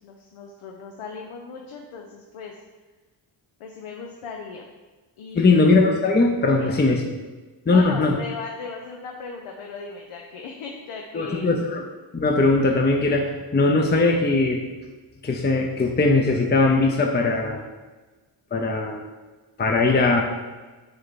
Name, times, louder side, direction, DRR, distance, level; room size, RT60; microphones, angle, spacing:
voice 1, 0.0-2.5 3.6-4.6 5.2-5.9 6.6-6.8 7.7-11.5, left 5 dB, 85° left, 1 dB, 0.8 m, -37 dB
voice 2, 5.3-7.2 7.7-8.2 11.1-11.8 12.1-14.7 15.2-17.6 18.5-19.0 19.6-20.2, left 3 dB, 20° left, 2 dB, 0.6 m, -20 dB
6.6 x 4.5 x 4.1 m, 1.3 s
cardioid pair, 70°, 49 cm